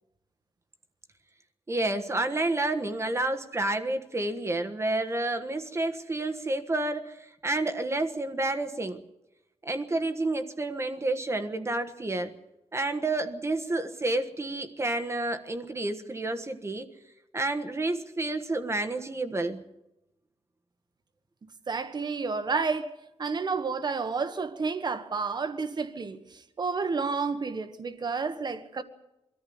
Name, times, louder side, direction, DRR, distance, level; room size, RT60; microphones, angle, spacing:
voice 1, 1.7-9.0 9.6-12.3 12.7-16.9 17.3-19.6, right 2 dB, 25° right, 1.4 m, -30 dB
voice 2, 21.7-22.9 23.2-28.8, right 4 dB, 40° right, 1.5 m, -30 dB
23.5 x 14.0 x 9.6 m
wide cardioid pair, 170°, 11 cm